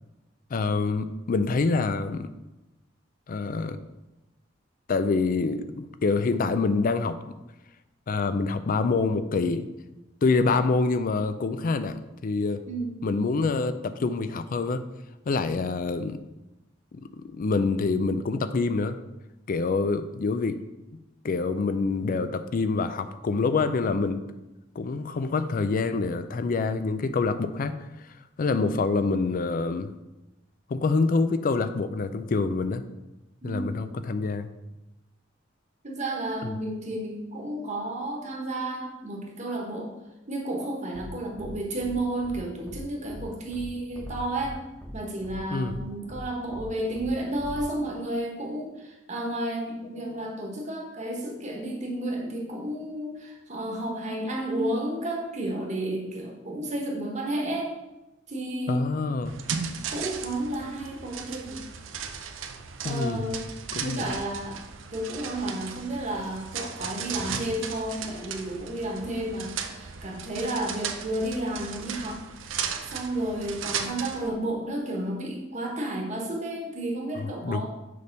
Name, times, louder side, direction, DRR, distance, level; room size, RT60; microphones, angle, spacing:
voice 1, 0.5-2.3 3.3-3.8 4.9-7.3 8.1-9.7 10.2-12.6 13.0-14.8 15.3-16.2 16.9-19.0 19.5-20.6 21.2-24.2 24.8-27.7 28.4-29.9 30.7-32.8 33.4-34.5 36.4-36.5 45.5-45.8 58.7-59.3 62.8-63.3 63.7-64.2 77.4-77.6, left 4 dB, 45° left, 11 dB, 0.4 m, -26 dB
voice 2, 12.7-13.0 33.4-33.8 35.8-39.9 40.3-44.6 44.9-57.7 58.3-58.9 59.9-61.6 62.8-63.5 63.8-64.6 64.9-72.2 72.8-77.7, right 1 dB, 40° right, 0 dB, 1.3 m, -32 dB
sound 1, 40.9-41.1 41.4-41.5 41.8-41.9 42.2-42.4 42.7-42.8 43.1-43.2 43.5-43.6 43.9-44.5 44.8-44.9 45.2-45.4 45.7-45.8 46.1-46.2 46.5-46.6 46.9-47.1 47.4-47.6, equal, 10° left, 1.1 m, -41 dB
sound 2, 59.2-74.3, right 7 dB, 90° right, 0.6 m, -36 dB
6.6 x 3.5 x 5.3 m, 0.98 s
head